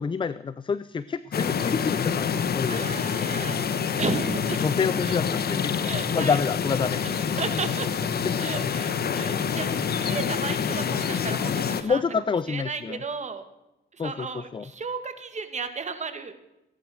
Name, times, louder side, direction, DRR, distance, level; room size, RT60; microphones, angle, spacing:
voice 1, 0.0-2.8 4.6-7.2 8.4-8.7 11.8-13.0 14.0-14.6, left 5 dB, 25° left, 16 dB, 0.5 m, -28 dB
sound 1, 1.3-11.8, left 7 dB, 50° left, 1.3 m, -27 dB
voice 2, 2.7-3.6 4.0-4.7 5.0-5.2 5.8-6.4 7.0-7.9 8.4-12.0 12.5-13.4 13.9-16.3, right 5 dB, 35° right, 8 dB, 2.1 m, -34 dB
17.5 x 10.5 x 6.4 m, 0.93 s
cardioid pair, 90°, 20 cm